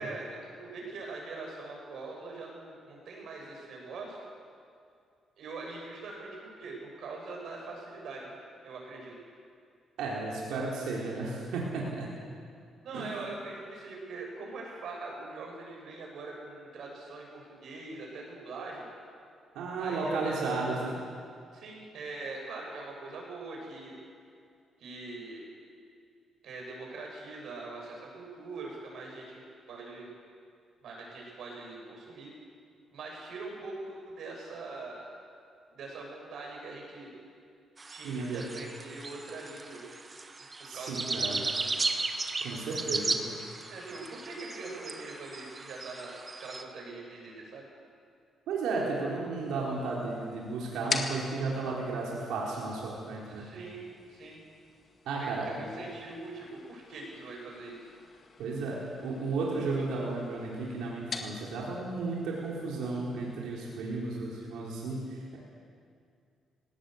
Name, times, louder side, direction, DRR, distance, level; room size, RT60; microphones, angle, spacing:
voice 1, 0.0-4.2 5.4-8.4 8.6-9.1 12.8-18.9 19.8-20.5 21.5-24.0 24.8-25.4 26.4-29.4 29.7-30.1 30.8-32.3 32.9-35.0 35.7-37.1 37.9-39.8 40.6-41.7 42.9-43.0 43.7-47.7 53.3-54.4 55.5-57.8, right 3 dB, 70° right, -1 dB, 7.4 m, -42 dB
voice 2, 10.0-12.1 12.9-13.2 19.5-21.0 38.0-38.4 40.7-41.4 42.4-43.2 48.5-53.5 55.1-55.6 58.4-65.4, right 3 dB, 85° right, -4 dB, 3.9 m, -33 dB
sound 1, 37.8-46.6, right 3 dB, 30° right, 1.5 m, -36 dB
sound 2, 49.4-63.7, left 5 dB, 50° left, 2.0 m, -44 dB
19.0 x 17.5 x 8.0 m, 2.3 s
cardioid pair, 90°, 0 cm